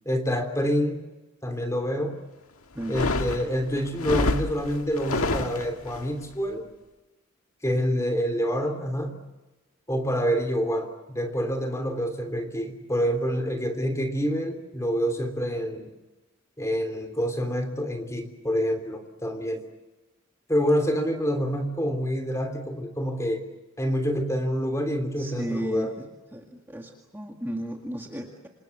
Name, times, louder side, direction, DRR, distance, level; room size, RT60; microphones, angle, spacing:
voice 1, 0.0-1.0 1.4-2.2 2.9-6.7 7.6-9.2 9.9-15.9 16.6-19.6 20.5-23.4 23.8-25.9, equal, 15° left, 5 dB, 3.3 m, -27 dB
sound 1, 2.8-6.0, left 2 dB, 90° left, 1.9 m, -28 dB
voice 2, 2.8-3.1 25.2-26.1 26.3-28.5, right 1 dB, 10° right, 1 dB, 2.0 m, -34 dB
27.5 x 27.0 x 7.2 m, 1.1 s
head